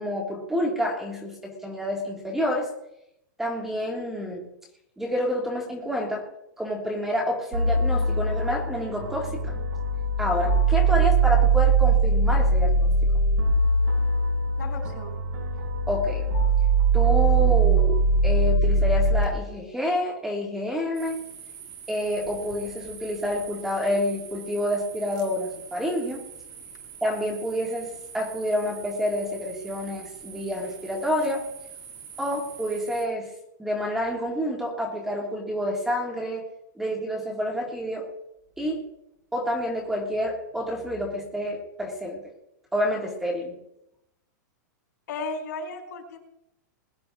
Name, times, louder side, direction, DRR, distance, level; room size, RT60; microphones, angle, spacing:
voice 1, 0.0-2.7 3.4-4.5 5.0-6.3 6.6-9.5 10.2-12.9 15.9-16.3 16.9-17.9 18.2-21.2 21.9-26.2 27.0-31.5 32.2-33.3 33.6-36.4 36.8-38.1 38.6-38.8 39.3-42.2 42.7-43.5, equal, 5° right, 0 dB, 1.8 m, -28 dB
sound 1, 7.5-19.2, right 3 dB, 65° right, 4.1 m, -21 dB
voice 2, 14.6-15.2 45.1-46.2, left 3 dB, 70° left, 1 dB, 4.4 m, -35 dB
sound 2, 20.9-33.0, right 7 dB, 25° right, 1.9 m, -44 dB
20.5 x 11.0 x 3.4 m, 0.83 s
supercardioid pair, 175°, 10 cm